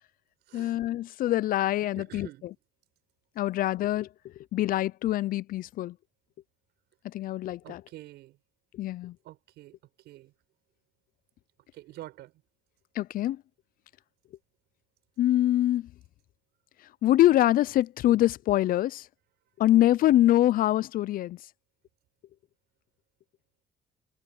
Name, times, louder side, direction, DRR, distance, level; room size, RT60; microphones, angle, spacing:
voice 1, 0.5-2.5 3.4-5.9 7.0-7.8 8.7-9.2 13.0-13.4 15.2-15.9 17.0-19.1 19.6-21.4, left 14 dB, 55° left, 0.5 m, -25 dB
voice 2, 1.9-2.4 7.6-8.4 9.2-9.8 10.0-10.3 11.7-12.3, right 16 dB, 80° right, 6.4 m, -46 dB
cardioid pair, 110°, 17 cm